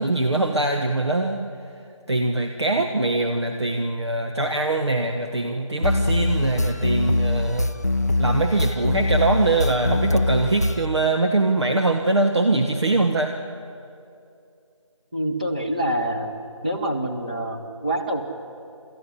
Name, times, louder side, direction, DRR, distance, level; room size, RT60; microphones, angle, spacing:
voice 1, 0.0-1.4 2.1-7.7 8.2-13.4, right 2 dB, 55° right, 3 dB, 1.4 m, -22 dB
sound 1, 5.8-10.9, left 2 dB, 30° left, 0.5 m, -23 dB
voice 2, 15.1-16.3 16.6-18.2, right 1 dB, 15° right, 1 dB, 1.0 m, -26 dB
27.5 x 14.0 x 9.6 m, 2.5 s
figure-of-eight pair, 165°, 17 cm